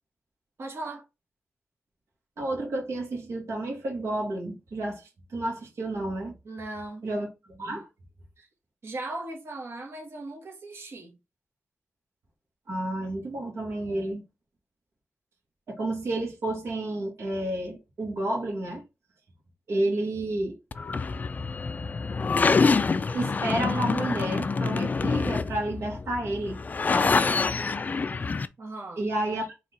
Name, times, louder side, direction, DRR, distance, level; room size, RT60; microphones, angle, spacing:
voice 1, 0.6-1.0 6.4-7.1 8.4-8.5 8.8-11.2 28.6-29.0, right 2 dB, 60° right, 1.3 m, -38 dB
voice 2, 2.4-6.3 7.0-7.9 12.7-14.2 15.7-18.8 19.7-20.9 23.1-26.6 26.9-27.1 29.0-29.5, right 1 dB, 75° right, 2.0 m, -31 dB
sound 1, 20.7-28.5, left 4 dB, 35° left, 0.3 m, -26 dB
4.4 x 3.1 x 3.8 m
wide cardioid pair, 105°, 5 cm